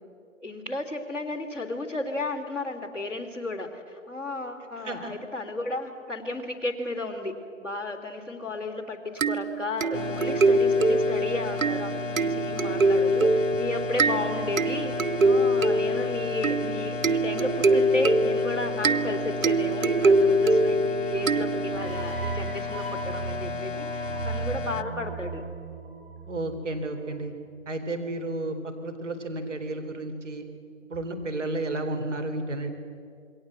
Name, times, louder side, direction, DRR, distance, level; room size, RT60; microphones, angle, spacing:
voice 1, 0.4-7.3 7.6-25.4, left 2 dB, 5° right, -5 dB, 1.9 m, -33 dB
sound 1, 9.2-22.0, right 2 dB, 80° right, 1.1 m, -24 dB
sound 2, 9.9-24.8, left 4 dB, 65° left, 1.2 m, -34 dB
sound 3, 21.7-27.0, right 5 dB, 45° right, 7.6 m, -36 dB
voice 2, 26.3-27.3 27.7-30.5 30.9-32.7, right 2 dB, 65° right, 6 dB, 4.0 m, -32 dB
27.5 x 22.5 x 8.0 m, 2.3 s
hypercardioid pair, 165°, 40 cm